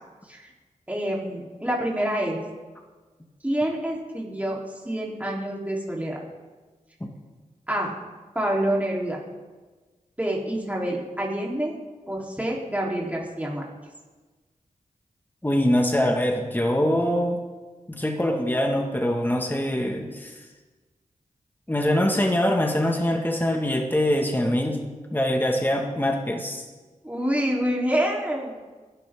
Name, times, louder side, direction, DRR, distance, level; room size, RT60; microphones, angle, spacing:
voice 1, 0.9-2.4 3.4-4.6 4.8-6.2 7.7-7.9 8.3-9.2 10.2-11.8 12.1-13.6 27.0-28.6, right 1 dB, 10° right, -3 dB, 3.9 m, -27 dB
voice 2, 15.4-17.4 17.9-20.3 21.7-24.8 25.1-26.6, left 1 dB, 15° left, 2 dB, 2.0 m, -23 dB
21.5 x 12.5 x 3.8 m, 1.3 s
cardioid pair, 55°, 14 cm